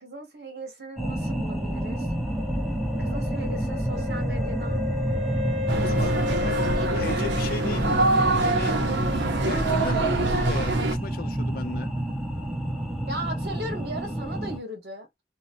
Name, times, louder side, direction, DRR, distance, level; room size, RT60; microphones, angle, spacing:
voice 1, 0.0-2.1 3.0-4.9 5.9-7.2 13.1-15.1, right 1 dB, 65° right, 1.1 m, -37 dB
sound 1, 1.0-14.6, right 1 dB, ahead, 0.5 m, -29 dB
Wind instrument woodwind instrument, 3.9-8.8, left 3 dB, 45° right, 0.6 m, -33 dB
sound 2, 5.7-11.0, right 2 dB, 90° right, 0.6 m, -25 dB
voice 2, 5.8-8.9 9.5-11.9, left 4 dB, 55° left, 0.4 m, -35 dB
2.8 x 2.0 x 2.6 m
head